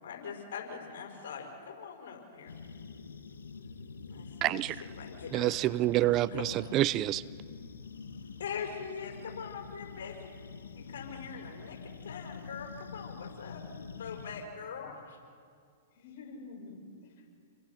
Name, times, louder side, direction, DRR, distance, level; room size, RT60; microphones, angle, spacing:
voice 1, 0.0-2.5 4.1-5.5 6.3-6.5 8.4-10.3 10.7-13.6 14.0-14.8, left 6 dB, 70° left, 2 dB, 5.7 m, -42 dB
sound 1, 2.5-14.5, left 5 dB, 90° left, 1.5 m, -46 dB
voice 2, 4.4-4.8 5.3-7.2, right 15 dB, 35° right, 19 dB, 0.5 m, -27 dB
voice 3, 14.6-15.0 15.9-17.3, left 3 dB, 55° left, 0 dB, 6.8 m, -48 dB
29.0 x 22.0 x 5.9 m, 2.2 s
hypercardioid pair, 120°, 0 cm